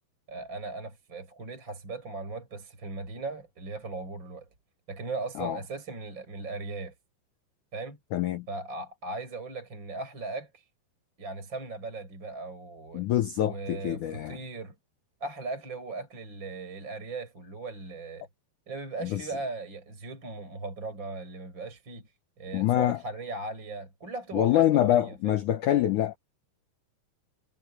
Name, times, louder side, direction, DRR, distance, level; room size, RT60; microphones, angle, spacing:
voice 1, 0.3-4.5 4.9-6.9 7.7-8.0 8.5-10.7 11.2-13.1 13.4-14.8 15.2-18.3 18.7-22.1 22.4-25.4, right 3 dB, 25° right, 7.4 m, -38 dB
voice 2, 8.1-8.5 12.9-14.4 19.0-19.3 22.5-23.0 24.3-26.2, left 12 dB, 80° left, 1.7 m, -25 dB
omnidirectional pair, 4.8 m